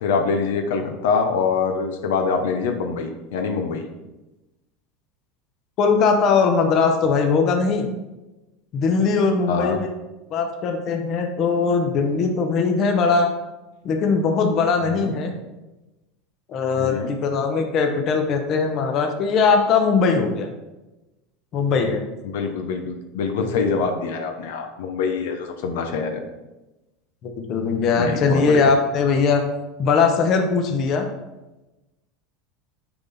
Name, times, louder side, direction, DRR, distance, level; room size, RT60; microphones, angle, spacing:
voice 1, 0.0-3.8 9.5-9.8 14.9-15.1 16.8-17.1 22.2-26.2 28.0-28.7, left 5 dB, 85° left, 5 dB, 0.9 m, -24 dB
voice 2, 5.8-7.9 8.7-9.9 10.3-13.3 13.8-15.3 16.5-20.5 21.5-22.0 23.4-23.5 27.2-29.4 29.8-31.1, left 5 dB, 40° left, 4 dB, 0.9 m, -20 dB
8.8 x 4.0 x 4.1 m, 1.0 s
supercardioid pair, 140°, 0 cm